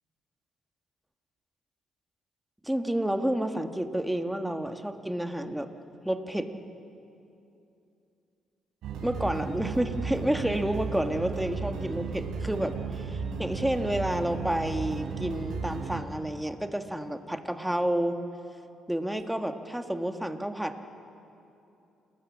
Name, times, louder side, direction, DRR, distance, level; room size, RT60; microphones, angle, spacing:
voice 1, 2.6-5.7 6.1-6.5 9.0-18.2 18.9-20.8, right 1 dB, 5° right, 6 dB, 1.6 m, -30 dB
sound 1, 8.8-16.0, right 5 dB, 80° right, 3.9 m, -34 dB
29.5 x 20.5 x 7.4 m, 2.7 s
cardioid pair, 90°, 0 cm